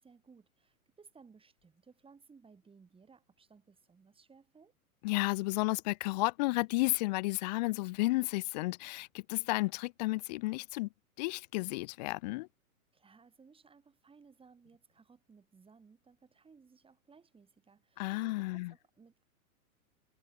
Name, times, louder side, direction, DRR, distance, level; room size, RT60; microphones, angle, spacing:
voice 1, 0.0-4.7 12.9-19.2, right 5 dB, 10° right, 6.6 m, -61 dB
voice 2, 5.0-10.9 11.2-12.5 18.0-18.7, left 22 dB, 30° left, 0.5 m, -32 dB
hypercardioid pair, 120°, 44 cm